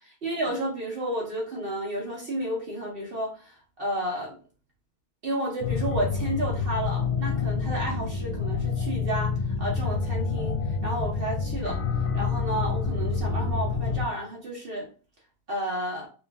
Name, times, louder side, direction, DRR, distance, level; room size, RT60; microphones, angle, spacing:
voice 1, 0.2-4.4 5.2-11.8 12.1-14.9 15.5-16.1, right 1 dB, 60° right, -2 dB, 0.5 m, -31 dB
sound 1, 5.6-14.1, left 5 dB, 60° left, 1.1 m, -28 dB
3.1 x 3.1 x 3.4 m, 0.37 s
omnidirectional pair, 2.4 m